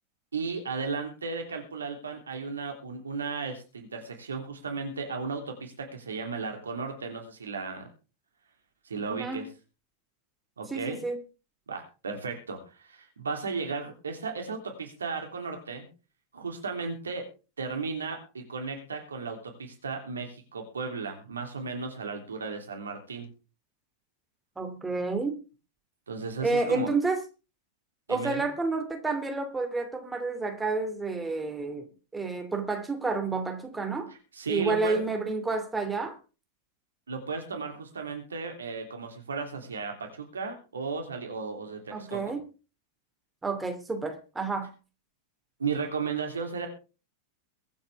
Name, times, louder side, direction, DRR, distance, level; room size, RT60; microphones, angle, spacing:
voice 1, 0.3-7.9 8.8-9.4 10.6-11.0 11.7-15.9 16.3-17.2 17.6-23.3 26.1-26.9 28.1-28.5 34.3-35.0 37.1-42.3 45.6-46.7, right 4 dB, 70° right, 3 dB, 3.1 m, -35 dB
voice 2, 9.1-9.4 10.7-11.2 24.6-25.4 26.4-27.2 28.1-31.9 32.1-34.1 34.5-36.2 41.9-42.4 43.4-44.7, right 3 dB, 10° right, 5 dB, 2.8 m, -30 dB
23.0 x 8.7 x 3.6 m, 0.34 s
figure-of-eight pair, 90°, 0 cm